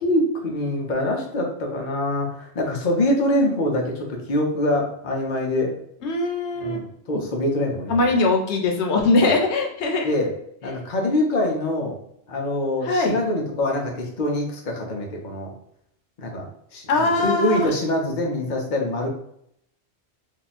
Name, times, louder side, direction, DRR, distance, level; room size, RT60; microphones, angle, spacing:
voice 1, 0.0-5.7 6.6-8.2 9.2-9.3 10.0-10.3 10.6-12.0 12.3-15.5 16.2-19.1, left 1 dB, 50° left, 0 dB, 0.8 m, -24 dB
voice 2, 6.0-6.8 7.9-10.1 12.9-13.2 16.9-17.7, left 2 dB, 85° left, 2 dB, 0.9 m, -21 dB
2.8 x 2.3 x 4.0 m, 0.71 s
omnidirectional pair, 1.1 m